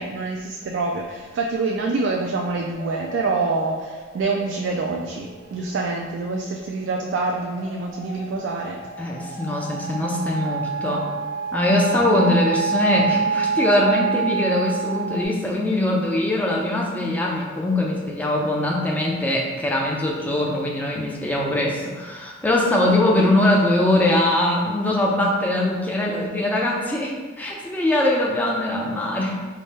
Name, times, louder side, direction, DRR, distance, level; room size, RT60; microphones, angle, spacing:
voice 1, 0.0-8.8 11.7-12.1 22.8-23.0, right 3 dB, 65° right, 0 dB, 0.3 m, -26 dB
sound 1, 2.7-6.5 7.0-15.2, right 6 dB, 75° left, 1.1 m, -28 dB
voice 2, 9.0-11.1 11.5-29.4, left 1 dB, 10° left, -2 dB, 0.4 m, -22 dB
3.3 x 2.2 x 4.1 m, 1.3 s
head